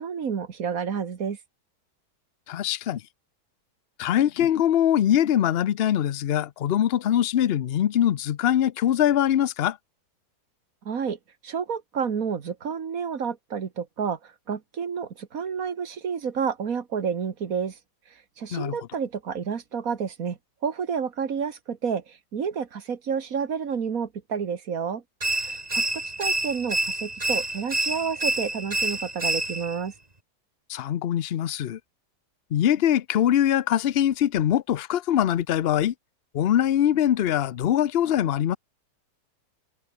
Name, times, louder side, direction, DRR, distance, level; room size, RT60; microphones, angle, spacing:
voice 1, 0.0-1.4 10.9-17.8 18.1-25.0 25.4-29.9, right 6 dB, 55° right, 1.9 m, -30 dB
voice 2, 2.5-3.0 4.0-9.8 18.5-18.8 30.7-31.8 32.5-35.9 36.3-38.6, left 11 dB, 75° left, 0.5 m, -23 dB
sound 1, 25.2-29.8, right 2 dB, 20° right, 2.6 m, -28 dB
omnidirectional pair, 1.9 m